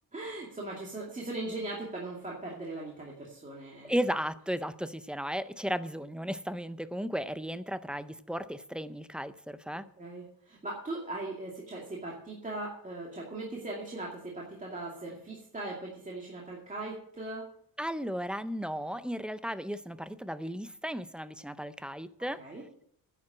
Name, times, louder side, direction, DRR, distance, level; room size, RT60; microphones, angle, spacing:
voice 1, 0.1-3.9 10.0-17.4 22.4-22.6, right 2 dB, 20° right, -4 dB, 2.4 m, -39 dB
voice 2, 3.8-9.8 17.8-22.4, equal, 5° right, 13 dB, 0.4 m, -35 dB
10.5 x 7.5 x 7.5 m, 0.65 s
wide cardioid pair, 160°, 38 cm